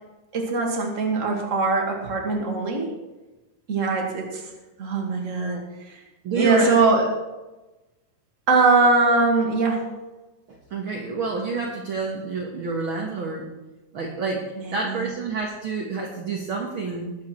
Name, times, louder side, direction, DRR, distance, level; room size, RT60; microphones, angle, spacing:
voice 1, 0.3-2.9 3.7-4.5 4.8-5.6 5.9-6.0 6.3-7.1 8.5-9.8 14.6-15.1, right 3 dB, 25° right, 1 dB, 2.2 m, -21 dB
voice 2, 6.2-6.8 10.7-13.4 13.9-17.2, right 4 dB, 50° right, -1 dB, 1.9 m, -28 dB
21.0 x 8.2 x 4.5 m, 1.1 s
omnidirectional pair, 3.6 m